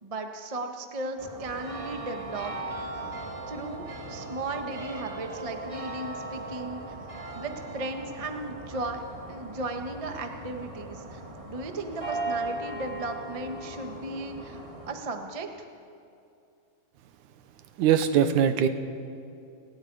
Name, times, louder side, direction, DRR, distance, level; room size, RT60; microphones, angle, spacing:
voice 1, 0.0-2.5 2.8-2.9 3.5-7.0 7.3-9.0 9.3-11.2 11.5-14.6 14.9-15.7, right 2 dB, 45° right, 4 dB, 0.4 m, -36 dB
sound 1, 1.2-14.9, right 2 dB, 20° right, 1.0 m, -38 dB
voice 2, 17.8-18.7, right 9 dB, 90° right, 10 dB, 2.5 m, -21 dB
30.0 x 19.0 x 4.9 m, 2.5 s
omnidirectional pair, 3.4 m